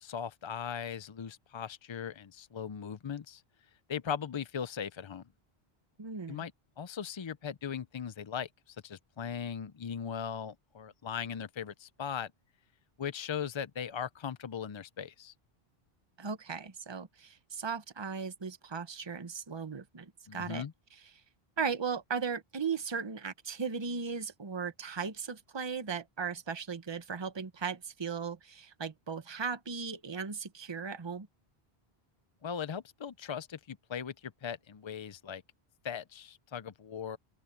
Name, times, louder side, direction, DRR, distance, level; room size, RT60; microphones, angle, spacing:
voice 1, 0.0-3.4 3.9-5.2 6.3-6.5 6.8-12.3 13.0-15.3 20.3-20.7 32.4-35.4 35.8-37.2, left 7 dB, 45° left, 0.4 m, -39 dB
voice 2, 6.0-6.4 16.2-20.6 20.9-21.0 21.6-31.3, right 6 dB, 30° right, 0.9 m, -37 dB
open air
omnidirectional pair, 1.0 m